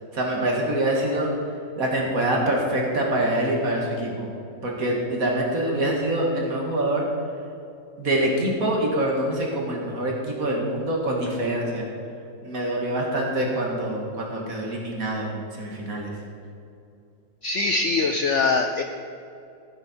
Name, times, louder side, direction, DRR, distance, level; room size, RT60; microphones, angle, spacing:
voice 1, 0.1-1.3 1.8-4.3 4.6-7.0 8.0-11.9 12.4-16.1, right 1 dB, 50° right, -1 dB, 2.3 m, -25 dB
voice 2, 17.4-18.8, left 3 dB, 90° left, 5 dB, 0.6 m, -22 dB
15.0 x 9.1 x 4.4 m, 2.6 s
omnidirectional pair, 2.0 m